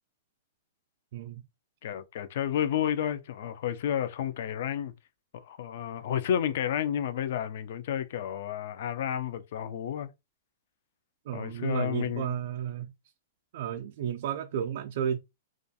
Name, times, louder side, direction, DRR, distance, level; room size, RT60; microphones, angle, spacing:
voice 1, 1.1-1.4 11.3-12.9 13.5-15.2, right 9 dB, 65° right, 0.3 m, -32 dB
voice 2, 1.8-4.9 5.3-10.1 11.3-12.4, left 9 dB, 65° left, 0.4 m, -31 dB
2.4 x 2.2 x 2.7 m
hypercardioid pair, 125°, 0 cm